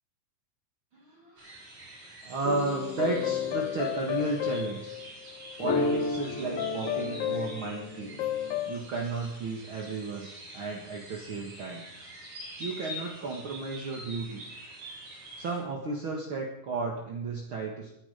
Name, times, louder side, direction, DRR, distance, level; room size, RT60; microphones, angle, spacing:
voice 1, 0.9-1.5 2.2-5.0 5.6-8.3 8.7-11.9 12.6-14.4 15.4-17.9, right 3 dB, 45° right, -1 dB, 2.4 m, -33 dB
sound 1, 1.4-15.6, right 1 dB, 65° right, 8.5 m, -46 dB
sound 2, 2.4-5.1 5.5-8.8, left 7 dB, 70° left, 1.4 m, -31 dB
21.5 x 11.0 x 5.3 m, 0.83 s
omnidirectional pair, 3.5 m